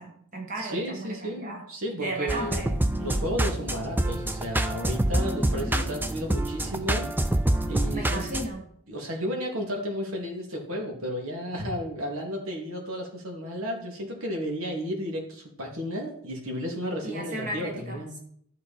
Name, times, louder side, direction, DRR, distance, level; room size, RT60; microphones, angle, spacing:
voice 1, 0.0-1.7 1.9-2.8 5.5-5.9 7.9-8.7 17.0-18.2, right 1 dB, 35° right, 2 dB, 1.2 m, -35 dB
voice 2, 0.6-7.1 7.7-8.3 8.9-18.2, equal, 80° right, 1 dB, 2.6 m, -33 dB
sound 1, 2.3-8.5, right 1 dB, 10° right, 0.4 m, -27 dB
12.5 x 6.8 x 4.3 m, 0.66 s
head